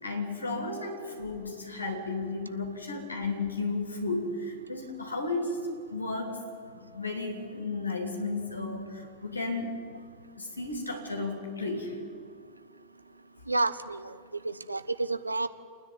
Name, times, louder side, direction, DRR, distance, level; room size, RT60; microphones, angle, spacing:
voice 1, 0.0-5.6 5.9-6.4 6.7-9.8 10.4-11.9, left 3 dB, 80° left, 2 dB, 3.4 m, -33 dB
voice 2, 13.5-14.1 14.4-15.5, right 2 dB, 80° right, 12 dB, 0.8 m, -30 dB
29.5 x 10.0 x 9.4 m, 2.2 s
figure-of-eight pair, 90°, 0 cm